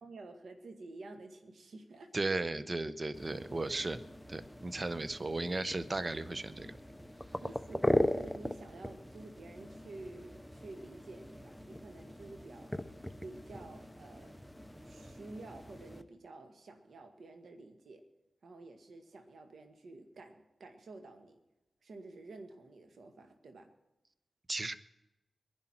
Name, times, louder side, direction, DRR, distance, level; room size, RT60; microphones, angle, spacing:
voice 1, 0.0-2.1 7.4-12.7 13.2-14.4 14.8-18.0 18.4-21.4 21.8-23.7, right 2 dB, 75° right, 6 dB, 1.8 m, -50 dB
voice 2, 2.1-4.0 4.3-6.8 24.5-24.8, right 2 dB, 35° right, 14 dB, 0.9 m, -35 dB
sound 1, 3.1-16.0, left 1 dB, 5° left, 0.9 m, -39 dB
22.5 x 11.0 x 4.4 m, 0.93 s
cardioid pair, 50°, 0 cm